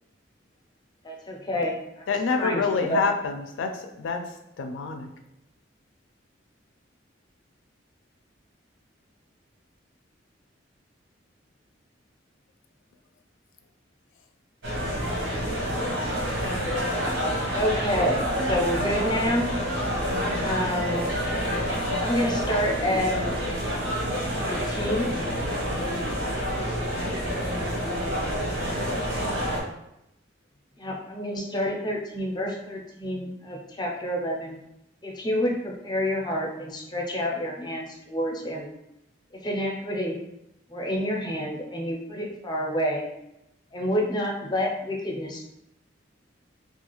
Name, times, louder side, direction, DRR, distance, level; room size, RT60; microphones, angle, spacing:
voice 1, 1.0-3.0 17.5-18.2 18.5-19.5 20.4-21.1 22.0-23.1 24.4-25.1 30.8-34.6 35.0-38.7 39.3-40.2 40.7-43.0 43.7-45.5, equal, 25° left, -1 dB, 0.4 m, -28 dB
voice 2, 2.1-5.1, left 4 dB, 85° left, 5 dB, 0.3 m, -27 dB
sound 1, 14.6-29.6, equal, 85° right, 0.9 m, -28 dB
voice 3, 26.8-29.0 29.2-29.6, equal, 40° right, 2 dB, 0.4 m, -43 dB
2.4 x 2.3 x 2.9 m, 0.84 s
head